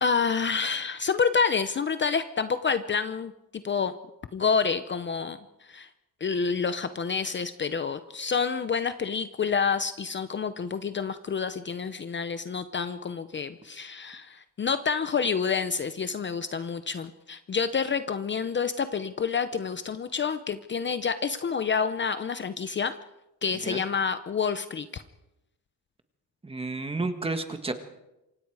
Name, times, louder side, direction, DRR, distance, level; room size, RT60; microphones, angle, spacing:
voice 1, 0.0-3.9 4.3-5.9 6.2-22.9 23.4-25.0, left 5 dB, 35° left, 11 dB, 0.7 m, -28 dB
voice 2, 26.4-27.7, right 3 dB, 15° right, 7 dB, 1.7 m, -31 dB
27.5 x 25.0 x 4.8 m, 0.95 s
cardioid pair, 155°, 35 cm